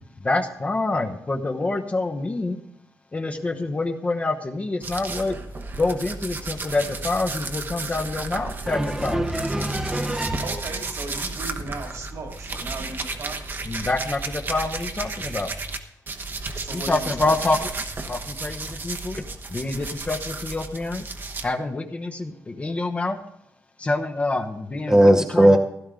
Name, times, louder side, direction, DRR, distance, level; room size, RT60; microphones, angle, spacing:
voice 1, 0.2-2.6 3.1-5.4 5.8-9.4 13.7-15.5 16.7-17.7 18.0-19.2 19.5-21.1 21.4-23.2 23.8-25.6, left 2 dB, 25° left, 4 dB, 1.0 m, -27 dB
sound 1, 4.8-15.8 16.1-21.5, right 3 dB, 35° right, 1.1 m, -33 dB
voice 2, 8.7-10.4 24.9-25.6, right 1 dB, 10° right, 3 dB, 0.9 m, -19 dB
voice 3, 10.4-13.4 16.5-17.4, right 2 dB, 65° right, 2 dB, 2.6 m, -37 dB
16.0 x 12.0 x 3.8 m, 0.78 s
wide cardioid pair, 140°, 6 cm